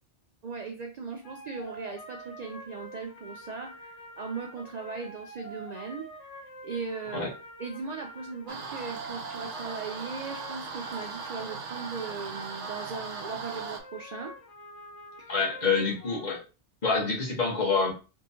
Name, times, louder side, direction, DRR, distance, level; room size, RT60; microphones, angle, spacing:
voice 1, 0.4-14.4 15.2-15.4, right 4 dB, 60° right, 3 dB, 0.4 m, -38 dB
sound 1, 1.2-16.3, right 1 dB, 85° left, 1.3 m, -46 dB
sound 2, 8.5-13.8, right 5 dB, 90° right, 1.0 m, -39 dB
voice 2, 15.3-16.4 16.8-17.9, left 4 dB, 40° left, -2 dB, 1.1 m, -26 dB
3.6 x 2.9 x 2.7 m, 0.31 s
omnidirectional pair, 1.2 m